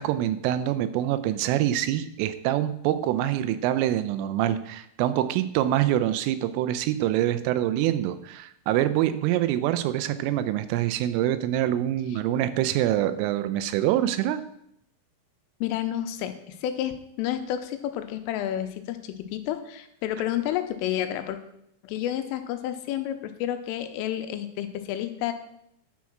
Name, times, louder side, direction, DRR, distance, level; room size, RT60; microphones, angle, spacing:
voice 1, 0.0-14.4, right 12 dB, 85° right, 12 dB, 3.1 m, -25 dB
voice 2, 15.6-21.4 21.8-25.3, left 11 dB, 85° left, 8 dB, 3.3 m, -30 dB
10.5 x 4.7 x 5.9 m, 0.76 s
omnidirectional pair, 5.8 m